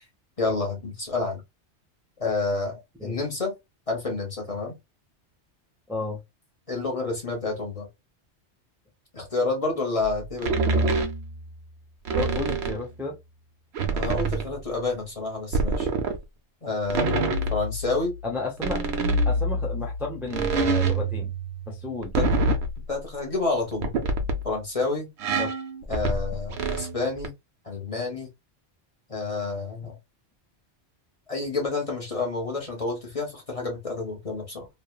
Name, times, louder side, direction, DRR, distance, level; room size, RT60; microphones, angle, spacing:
voice 1, 0.4-1.4 2.2-3.5 3.9-4.7 6.7-7.9 9.1-10.9 13.9-15.9 16.6-17.2 17.5-18.1 22.2-22.4 22.9-24.0 24.4-25.1 25.9-27.3 27.6-28.3 29.1-29.9 31.3-34.7, left 3 dB, 35° left, 0.9 m, -29 dB
voice 2, 5.9-6.2 12.1-13.2 18.2-18.8 19.3-21.3 21.7-22.1 25.4-25.5, left 3 dB, ahead, 0.6 m, -32 dB
sound 1, 10.0-10.1 10.4-11.6 12.0-12.8 13.7-14.6 15.5-16.2 16.8-18.2 18.6-22.8 23.7-24.5 25.2-27.3, right 2 dB, 75° right, 0.9 m, -26 dB
3.1 x 2.1 x 2.2 m
omnidirectional pair, 1.2 m